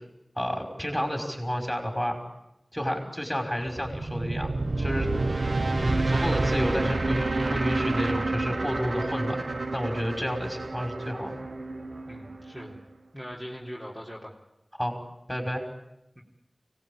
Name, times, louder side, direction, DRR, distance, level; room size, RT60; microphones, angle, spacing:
voice 1, 0.4-2.2 2.7-9.4 9.7-11.4 14.7-15.0 15.3-15.6, equal, 5° left, 3 dB, 5.6 m, -31 dB
sound 1, 3.7-12.8, right 2 dB, 70° right, 1.1 m, -29 dB
voice 2, 12.1-12.8 13.1-14.3 16.2-16.3, equal, 20° right, -4 dB, 3.8 m, -40 dB
24.5 x 18.5 x 8.8 m, 0.88 s
wide cardioid pair, 50°, 0 cm